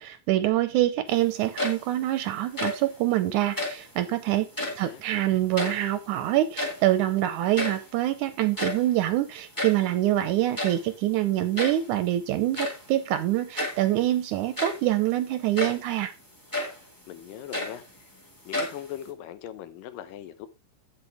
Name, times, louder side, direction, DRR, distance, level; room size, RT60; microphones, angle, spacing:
voice 1, 0.0-4.5 4.8-16.1, right 14 dB, 80° right, 1.9 m, -25 dB
sound 1, 1.4-2.0 2.4-2.9 3.5-3.9 4.4-4.9 5.3-6.1 6.4-7.0 7.3-7.4 7.5-7.9 8.4-9.9 10.5-10.9 11.5-11.9 12.5-12.9 13.5-13.9 14.4-14.9 15.5-15.9 16.5-16.8 17.3-18.1 18.5-19.1, left 1 dB, 10° left, 1.2 m, -32 dB
voice 2, 4.6-5.0 17.1-18.1 18.5-20.5, left 11 dB, 85° left, 2.5 m, -40 dB
8.6 x 8.0 x 3.4 m
omnidirectional pair, 3.9 m